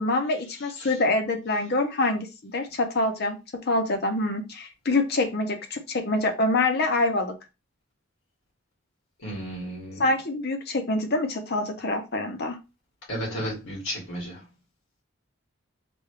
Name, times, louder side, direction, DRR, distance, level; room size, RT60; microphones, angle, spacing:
voice 1, 0.0-3.4 3.7-7.4 10.0-12.6, left 2 dB, 45° left, 0.7 m, -25 dB
voice 2, 9.2-10.0 13.1-14.4, equal, 70° left, 1.9 m, -33 dB
3.5 x 2.3 x 3.1 m
head